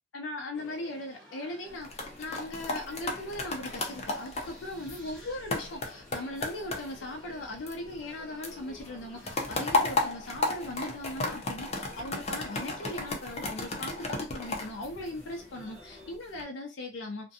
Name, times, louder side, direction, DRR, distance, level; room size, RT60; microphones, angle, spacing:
voice 1, 0.1-17.3, left 1 dB, 85° left, 0.5 m, -39 dB
sound 1, 0.5-16.2, left 2 dB, 5° left, 0.9 m, -53 dB
sound 2, 1.7-8.2 8.4-15.6 16.1-16.4, left 2 dB, 35° left, 0.5 m, -34 dB
2.5 x 2.1 x 2.6 m
head